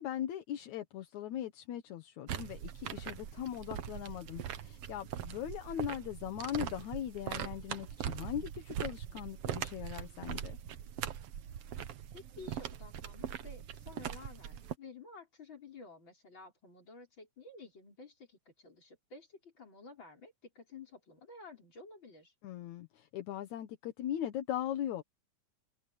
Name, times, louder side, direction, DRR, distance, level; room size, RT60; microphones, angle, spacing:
voice 1, 0.0-10.6 22.4-25.0, left 11 dB, 75° left, 2.5 m, -39 dB
sound 1, 2.3-14.7, right 10 dB, 60° right, 1.8 m, -41 dB
voice 2, 12.1-22.3, left 3 dB, 40° left, 6.3 m, -52 dB
omnidirectional pair, 3.4 m